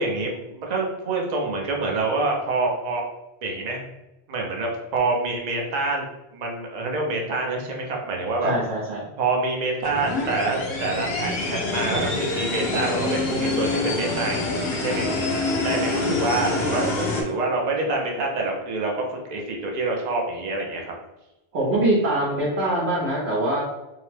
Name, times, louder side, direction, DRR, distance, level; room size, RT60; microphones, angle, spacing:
voice 1, 0.0-3.0 3.4-3.8 4.3-6.1 6.3-8.5 9.2-14.5 14.8-15.1 15.6-20.9, right 3 dB, 50° right, 0 dB, 0.6 m, -26 dB
voice 2, 8.4-9.1 16.0-16.1 21.5-23.6, right 1 dB, 75° right, -5 dB, 1.0 m, -23 dB
sound 1, 9.8-17.2, left 2 dB, 70° left, 0.9 m, -26 dB
2.8 x 2.1 x 3.1 m, 0.98 s
omnidirectional pair, 1.1 m